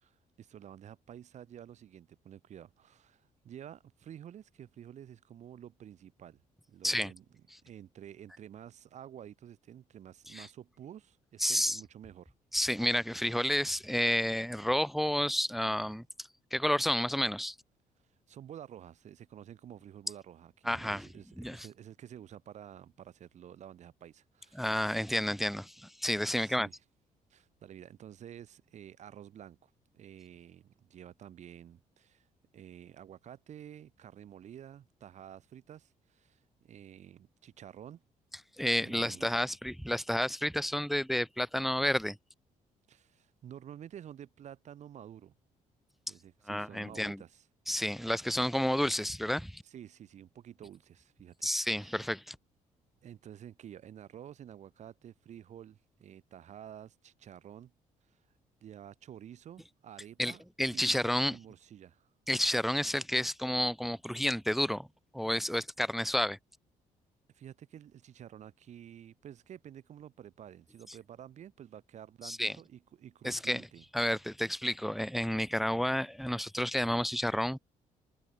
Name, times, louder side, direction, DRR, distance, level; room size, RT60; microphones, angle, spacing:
voice 1, 0.0-6.4 6.7-7.2 7.6-12.3 18.3-24.8 26.4-26.7 27.3-32.3 32.5-38.0 38.8-39.3 42.9-45.4 46.1-47.4 49.6-52.0 53.0-57.7 58.6-60.4 60.7-61.0 61.3-62.1 67.3-73.8, right 10 dB, 55° right, 0.9 m, -50 dB
voice 2, 11.4-11.8 12.5-17.6 20.7-21.1 21.4-21.7 24.5-26.7 38.6-42.2 46.5-47.2 47.7-49.6 51.4-52.4 60.2-61.4 62.3-64.9 65.1-66.4 72.2-72.5 73.2-73.6 73.9-77.6, equal, ahead, 0.3 m, -31 dB
cardioid pair, 110°, 14 cm